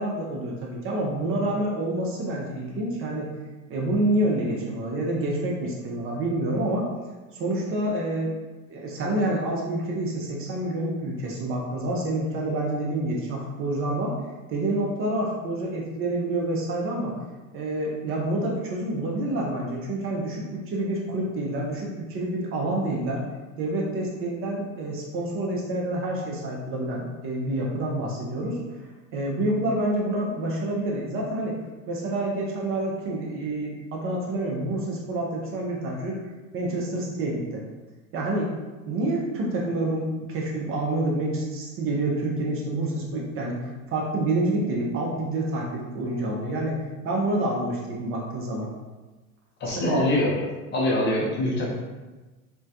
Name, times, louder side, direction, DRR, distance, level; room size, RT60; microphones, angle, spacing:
voice 1, 0.0-3.3 3.7-6.9 7.3-8.3 8.7-14.1 14.5-17.1 17.5-23.2 23.6-28.6 29.1-31.6 31.9-36.2 36.5-37.6 38.1-38.5 38.8-46.7 47.0-48.7 49.7-50.0, right 1 dB, 30° right, -2 dB, 0.5 m, -28 dB
voice 2, 49.6-50.5 50.7-51.7, left 1 dB, 25° left, -4 dB, 0.5 m, -24 dB
2.2 x 2.2 x 2.6 m, 1.2 s
hypercardioid pair, 85°, 43 cm